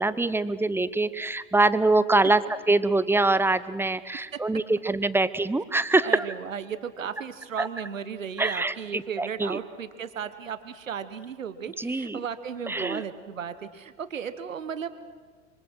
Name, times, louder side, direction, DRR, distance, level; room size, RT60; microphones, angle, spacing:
voice 1, 0.0-6.3 7.6-7.7 8.4-9.6 11.8-12.2 12.7-13.0, right 2 dB, 5° right, 15 dB, 0.8 m, -24 dB
voice 2, 6.0-14.9, right 7 dB, 85° right, 12 dB, 1.4 m, -35 dB
25.5 x 24.5 x 6.3 m, 1.5 s
hypercardioid pair, 80°, 38 cm